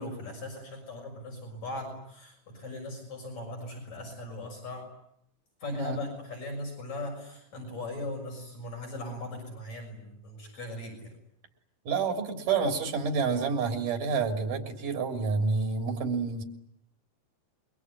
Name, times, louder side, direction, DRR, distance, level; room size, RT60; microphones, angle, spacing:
voice 1, 0.0-4.9 5.6-11.1, left 1 dB, 60° left, 1 dB, 7.7 m, -39 dB
voice 2, 11.9-16.4, right 5 dB, 85° right, 5 dB, 4.8 m, -28 dB
26.0 x 23.0 x 9.8 m, 0.73 s
omnidirectional pair, 3.6 m